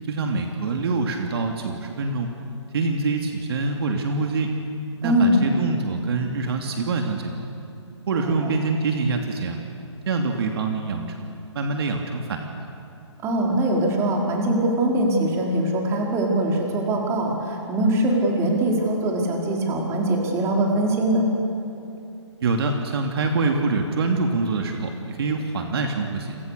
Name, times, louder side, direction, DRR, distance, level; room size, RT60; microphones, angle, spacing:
voice 1, 0.1-2.3 2.7-4.5 5.0-7.3 8.1-9.6 10.1-12.7 22.4-26.4, right 3 dB, 55° right, 3 dB, 2.7 m, -25 dB
voice 2, 5.0-5.4 8.2-8.5 13.2-21.2, right 1 dB, 20° right, -1 dB, 4.8 m, -22 dB
29.5 x 27.5 x 6.8 m, 2.7 s
hypercardioid pair, 145°, 15 cm